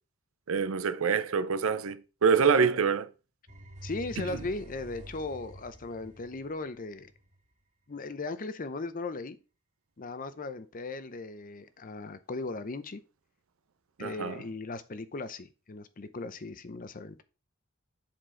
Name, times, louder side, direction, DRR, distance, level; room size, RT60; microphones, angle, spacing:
voice 1, 0.5-3.1 14.0-14.4, right 6 dB, 75° right, 0.6 m, -26 dB
sound 1, 3.5-7.4, right 1 dB, 35° right, 2.3 m, -47 dB
voice 2, 3.8-7.1 7.9-9.4 10.0-13.0 14.0-17.2, left 3 dB, 40° left, 0.6 m, -37 dB
7.5 x 4.4 x 4.4 m
head